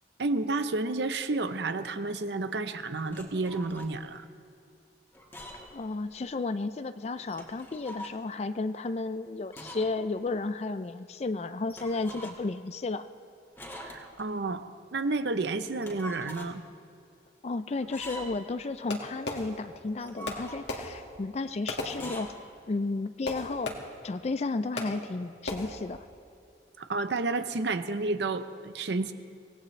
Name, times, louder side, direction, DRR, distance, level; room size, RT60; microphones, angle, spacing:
voice 1, 0.2-4.3 13.8-14.6 14.9-16.6 26.8-29.1, right 3 dB, 75° right, 10 dB, 0.8 m, -31 dB
sound 1, 3.1-3.9 5.1-5.8 6.1-6.2 7.2-8.2 9.5-10.0 10.3-10.4 11.7-12.5 13.6-14.3 15.7-16.5 17.8-18.5 19.9-20.9 21.9-22.3, equal, 10° left, 1.8 m, -44 dB
voice 2, 5.7-13.1 17.4-22.3 22.7-23.8 24.0-26.1, left 3 dB, 35° left, 11 dB, 0.4 m, -33 dB
Fireworks, 18.9-19.9 20.2-22.7 23.3-24.2 24.8-25.2 25.5-26.0, left 1 dB, 75° left, 1.9 m, -38 dB
24.5 x 18.0 x 3.3 m, 2.3 s
head